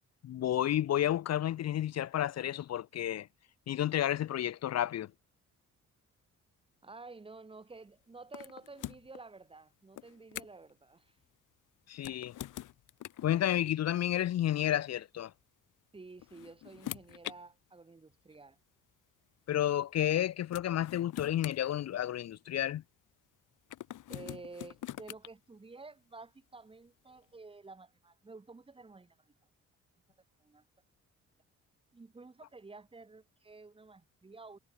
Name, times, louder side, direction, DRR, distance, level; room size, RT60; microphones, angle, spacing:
voice 1, 0.2-3.3 3.7-5.1 11.9-12.3 13.2-15.3 19.5-22.8, left 12 dB, 60° left, 0.8 m, -31 dB
voice 2, 6.8-11.2 15.9-18.6 24.1-29.2 30.4-30.7 31.9-34.6, right 3 dB, 20° right, 1.8 m, -51 dB
sound 1, 8.3-9.2 10.0-10.7 11.9-13.3 14.6-14.8 15.9-17.4 18.3-18.4 20.1-20.2 20.5-22.4 23.7-25.3, left 13 dB, 90° left, 2.6 m, -44 dB
cardioid pair, 150°, 30 cm